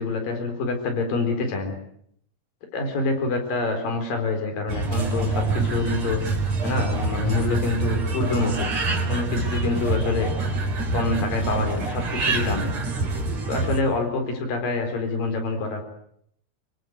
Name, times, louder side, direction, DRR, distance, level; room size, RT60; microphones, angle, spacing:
voice 1, 0.0-1.8 2.7-6.2 6.6-8.7 9.1-10.3 10.9-12.7 13.5-15.8, left 3 dB, 70° left, 5 dB, 5.9 m, -26 dB
sound 1, 4.7-13.8, right 2 dB, 50° right, 5.0 m, -26 dB
25.0 x 23.5 x 8.1 m, 0.69 s
omnidirectional pair, 4.1 m